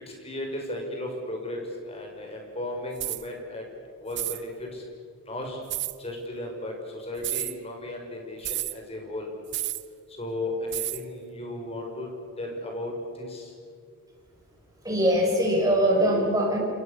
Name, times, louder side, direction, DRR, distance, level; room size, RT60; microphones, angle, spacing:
voice 1, 0.1-3.6 4.0-4.8 5.3-5.6 6.0-9.3 10.2-12.1 12.4-12.9 13.2-13.5, left 1 dB, 30° left, 1 dB, 6.0 m, -35 dB
sound 1, 3.0-3.2 4.1-4.4 5.7-5.9 7.2-7.5 8.4-8.8 9.5-9.9 10.7-11.0, right 17 dB, 55° right, 0.9 m, -31 dB
voice 2, 14.8-16.6, equal, 15° right, -1 dB, 6.5 m, -22 dB
29.0 x 28.5 x 6.8 m, 2.3 s
head